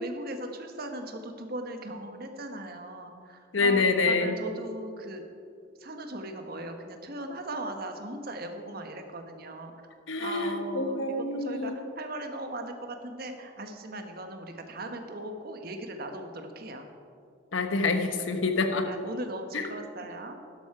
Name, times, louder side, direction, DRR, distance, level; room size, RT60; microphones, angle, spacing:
voice 1, 0.0-5.2 5.8-9.7 10.2-11.1 11.4-16.9 18.8-20.4, right 1 dB, 50° right, 5 dB, 1.3 m, -38 dB
voice 2, 3.5-4.3 10.1-11.8 17.5-18.9 19.5-19.7, left 3 dB, 75° left, 6 dB, 1.1 m, -26 dB
12.0 x 11.5 x 4.9 m, 2.4 s
head